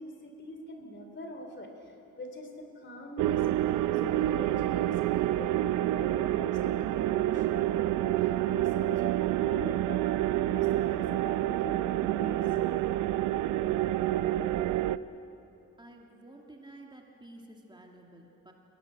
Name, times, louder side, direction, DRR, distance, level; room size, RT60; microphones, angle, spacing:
voice 1, 0.0-3.4 3.9-12.4, left 1 dB, 40° left, 4 dB, 3.1 m, -44 dB
sound 1, 3.2-15.0, right 14 dB, 85° right, 0.6 m, -28 dB
voice 2, 15.8-18.5, right 1 dB, 15° right, 1 dB, 2.5 m, -51 dB
23.0 x 17.5 x 7.9 m, 2.9 s
cardioid pair, 90°, 30 cm